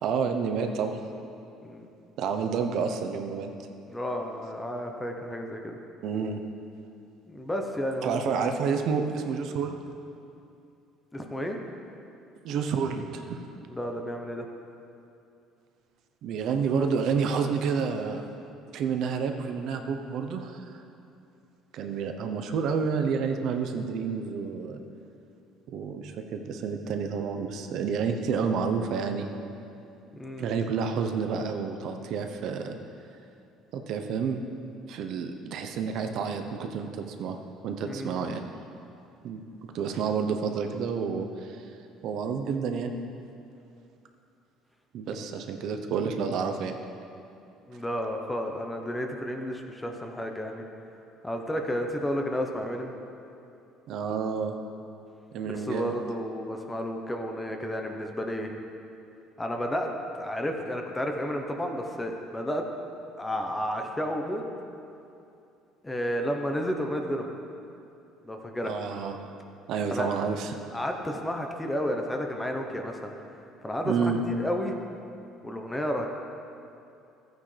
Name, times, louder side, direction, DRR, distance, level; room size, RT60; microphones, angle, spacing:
voice 1, 0.0-1.0 2.2-3.5 6.0-6.4 8.0-9.8 12.4-13.4 16.2-18.2 18.7-20.7 21.7-24.8 25.7-29.3 30.4-32.8 33.7-34.4 34.9-37.4 37.6-38.4 39.2-39.4 39.7-41.7 42.0-42.9 44.9-46.8 53.9-54.5 55.3-56.0 68.6-69.2 69.7-70.5 73.8-74.2, right 6 dB, 65° right, 5 dB, 0.8 m, -29 dB
voice 2, 3.9-5.8 7.3-8.4 11.1-11.6 13.7-14.5 30.1-30.5 37.8-38.5 47.7-50.6 51.2-52.9 55.5-58.5 59.4-62.6 63.2-64.4 65.8-67.3 68.2-68.8 69.9-70.1 70.7-73.1 73.6-74.7 75.4-76.1, equal, 10° left, 3 dB, 0.9 m, -32 dB
13.5 x 9.1 x 3.3 m, 2.6 s
cardioid pair, 115°, 0 cm